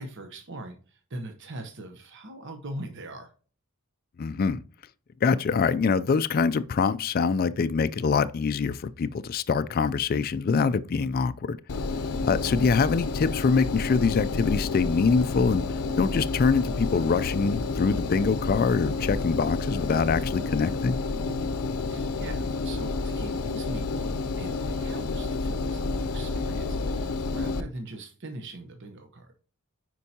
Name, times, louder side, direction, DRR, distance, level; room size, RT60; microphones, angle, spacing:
voice 1, 0.0-3.3 21.2-21.5 21.8-29.3, right 1 dB, 55° right, 0.9 m, -41 dB
voice 2, 4.2-4.6 5.2-11.6 12.2-15.6 16.0-21.0, left 5 dB, 40° left, 0.3 m, -24 dB
Engine, 11.7-27.6, left 3 dB, 85° left, 0.6 m, -30 dB
9.7 x 4.6 x 2.8 m
head